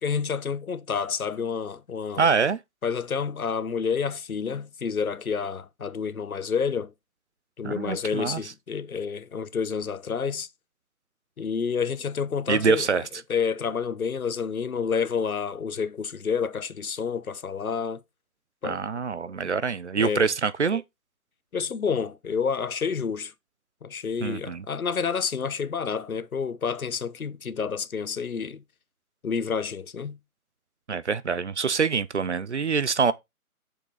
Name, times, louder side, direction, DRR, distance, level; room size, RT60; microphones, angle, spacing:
voice 1, 0.0-2.3 2.8-6.9 7.6-10.5 11.4-12.9 13.3-18.0 18.6-18.8 20.0-20.3 21.5-23.3 23.8-28.6 29.2-30.2, left 6 dB, 70° left, 1.0 m, -29 dB
voice 2, 2.2-2.6 7.6-8.4 12.5-13.0 18.6-20.8 24.2-24.7 30.9-33.1, right 5 dB, 50° right, 0.6 m, -25 dB
6.8 x 5.9 x 3.9 m
figure-of-eight pair, 155°, 45 cm